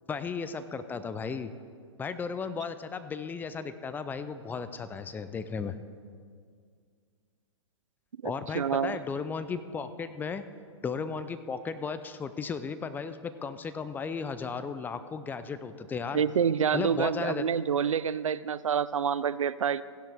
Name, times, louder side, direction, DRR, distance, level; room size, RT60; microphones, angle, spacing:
voice 1, 0.1-1.5 2.0-5.8 8.2-10.4 10.8-16.2 16.7-17.5, left 5 dB, 10° left, 11 dB, 0.4 m, -35 dB
voice 2, 8.2-9.0 16.1-19.8, right 7 dB, 90° right, 18 dB, 0.4 m, -27 dB
16.0 x 11.0 x 3.5 m, 2.1 s
hypercardioid pair, 120°, 16 cm